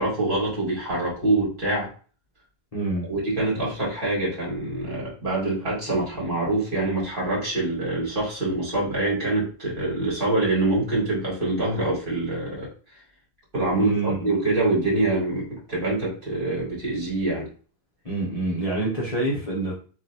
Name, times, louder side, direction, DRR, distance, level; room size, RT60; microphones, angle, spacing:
voice 1, 0.0-1.9 3.1-12.7 13.5-13.9 14.2-17.5, right 2 dB, 55° right, -5 dB, 2.0 m, -25 dB
voice 2, 2.7-3.1 5.9-6.0 13.7-14.3 18.0-19.7, right 2 dB, 40° left, -4 dB, 1.0 m, -27 dB
3.2 x 2.6 x 2.7 m, 0.40 s
omnidirectional pair, 1.0 m